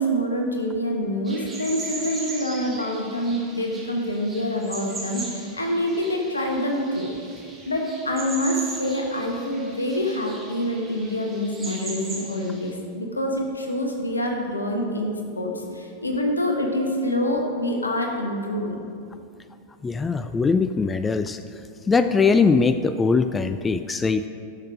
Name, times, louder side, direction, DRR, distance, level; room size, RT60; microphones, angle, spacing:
voice 1, 0.0-7.1 7.7-18.8, equal, 80° left, 2 dB, 1.4 m, -26 dB
sound 1, 1.2-12.7, right 3 dB, 15° right, 1.8 m, -38 dB
voice 2, 19.8-21.4 21.9-24.3, left 4 dB, 15° left, 10 dB, 0.3 m, -21 dB
11.5 x 6.4 x 4.9 m, 2.4 s
figure-of-eight pair, 90°, 0 cm